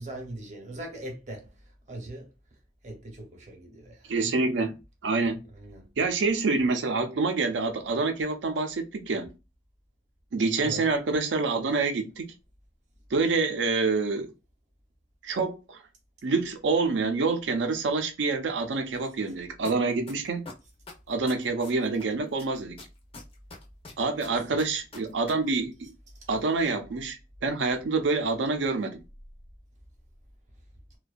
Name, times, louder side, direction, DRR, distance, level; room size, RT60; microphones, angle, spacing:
voice 1, 0.0-1.5 1.9-2.3 2.8-4.1 5.5-5.9 10.6-10.9 24.3-24.4, right 1 dB, 40° right, 0.7 m, -40 dB
voice 2, 4.1-5.4 6.0-9.3 10.3-12.2 13.1-14.3 15.2-15.8 16.2-20.4 21.1-22.8 24.0-25.9 26.3-29.0, right 3 dB, 80° right, 0.5 m, -27 dB
sound 1, 19.6-19.7 20.1-22.0 22.4-25.3 25.6-25.7, left 3 dB, 30° left, 0.5 m, -44 dB
2.5 x 2.2 x 2.3 m
head